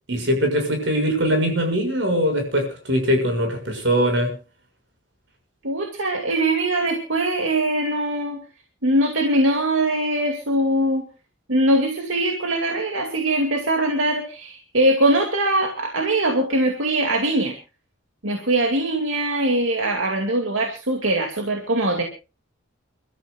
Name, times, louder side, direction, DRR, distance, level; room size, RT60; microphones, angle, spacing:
voice 1, 0.1-4.3, equal, 65° right, 4 dB, 6.5 m, -21 dB
voice 2, 5.6-8.4 8.8-11.1 11.5-17.5 18.2-22.0, right 1 dB, 85° right, 4 dB, 2.4 m, -22 dB
29.5 x 13.0 x 2.4 m, 0.32 s
head